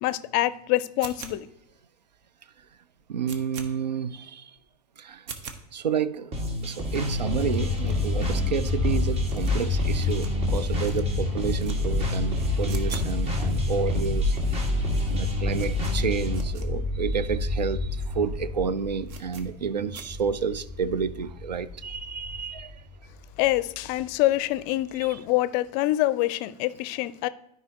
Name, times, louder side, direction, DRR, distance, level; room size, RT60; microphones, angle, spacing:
voice 1, 0.0-1.5 23.4-27.3, left 16 dB, 45° left, 0.5 m, -25 dB
sound 1, 1.0-1.6 2.1-2.2 2.6-2.7 3.0-3.7 4.1-4.2 4.6-4.7 5.1-5.6 6.1-6.2 6.4-6.5 6.7-6.8 7.1-7.2 7.4-8.7 9.1-10.5 10.7-11.0 11.4-11.8 12.0-13.2 13.4-13.5 14.1-14.2 14.4-14.8 15.1-16.7 17.1-17.2 17.4-17.5 18.0-18.2 18.4-18.5 19.1-19.4 19.9-20.0, right 6 dB, 50° right, 1.1 m, -42 dB
voice 2, 3.1-4.5 5.0-5.2 5.7-6.3 6.6-14.4 15.1-22.8 25.1-25.2, right 6 dB, 85° right, 0.5 m, -30 dB
sound 2, 6.3-16.4, left 2 dB, 30° right, 1.8 m, -31 dB
sound 3, 7.0-24.1, left 2 dB, ahead, 1.1 m, -29 dB
13.0 x 4.8 x 2.9 m
hypercardioid pair, 95°, 21 cm